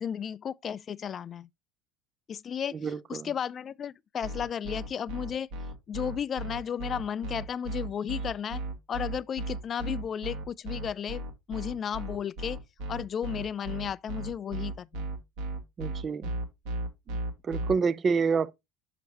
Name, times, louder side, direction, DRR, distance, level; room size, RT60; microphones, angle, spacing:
voice 1, 0.0-1.5 2.3-5.5 5.9-8.6 8.9-11.2 11.5-12.6 12.9-15.1, left 8 dB, 30° left, 0.3 m, -34 dB
voice 2, 2.7-3.3 15.8-16.3 17.1-17.2 17.4-18.5, right 5 dB, 30° right, 0.5 m, -28 dB
sound 1, 4.2-17.7, right 1 dB, 70° right, 1.8 m, -35 dB
6.2 x 5.7 x 2.9 m
supercardioid pair, 125°, 0 cm